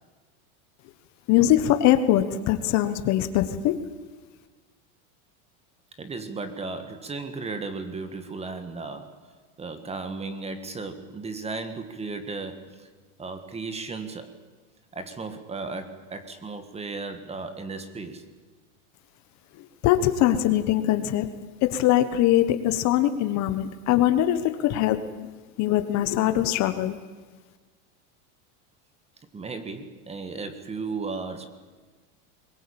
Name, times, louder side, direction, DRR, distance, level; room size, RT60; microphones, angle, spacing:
voice 1, 1.3-3.7 19.8-21.3 21.6-25.0 25.6-27.0, left 12 dB, 40° left, 10 dB, 1.3 m, -22 dB
voice 2, 6.0-12.9 13.2-14.3 14.9-18.3 29.3-31.5, right 4 dB, 15° right, 10 dB, 1.8 m, -35 dB
22.5 x 20.0 x 8.8 m, 1.3 s
supercardioid pair, 150°, 42 cm